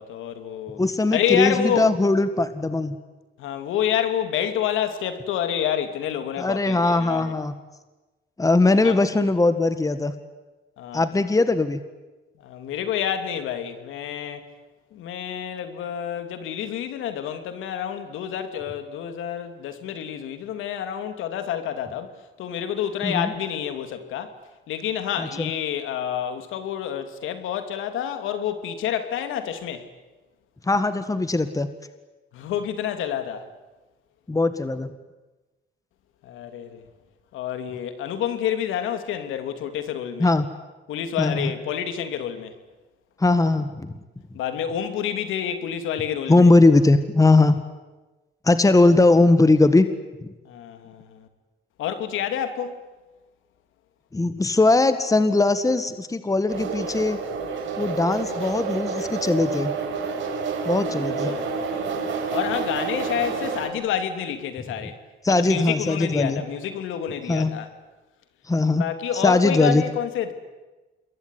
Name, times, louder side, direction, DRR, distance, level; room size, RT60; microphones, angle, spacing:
voice 1, 0.0-0.8 1.1-1.9 3.4-7.3 8.8-9.0 10.8-11.1 12.4-14.5 14.9-22.1 22.4-24.3 24.7-29.9 32.3-33.4 36.2-36.8 37.3-40.3 40.9-42.6 44.3-46.5 50.4-51.3 51.8-52.9 60.8-62.0 62.3-65.0 65.3-67.7 68.8-70.3, left 9 dB, 90° left, 2.8 m, -28 dB
voice 2, 0.8-3.0 6.4-7.5 8.4-10.1 10.9-11.8 23.0-23.3 25.2-25.5 30.7-31.7 34.3-34.9 40.2-40.5 41.2-41.5 43.2-43.9 46.3-47.5 48.4-49.9 54.1-57.2 57.8-59.7 60.7-61.3 65.2-66.4 67.3-67.5 68.5-68.8 69.1-69.8, left 2 dB, 15° left, 1.8 m, -20 dB
sound 1, 56.5-63.7, right 5 dB, 70° right, 5.6 m, -29 dB
27.5 x 22.0 x 9.9 m
cardioid pair, 90°, 20 cm